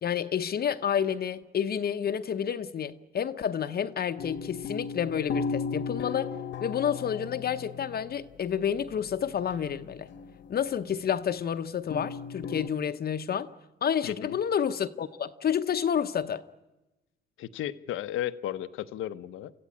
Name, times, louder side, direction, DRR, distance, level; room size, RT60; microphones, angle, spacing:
voice 1, 0.0-6.3 6.6-10.1 10.5-13.5 13.8-16.4, left 8 dB, 50° left, 0.8 m, -29 dB
sound 1, 4.2-8.2 8.5-10.8 11.9-12.7, left 5 dB, 70° left, 1.2 m, -36 dB
voice 2, 14.0-14.4 17.4-19.5, left 12 dB, 85° left, 0.9 m, -34 dB
27.0 x 14.5 x 9.7 m
cardioid pair, 90°, 20 cm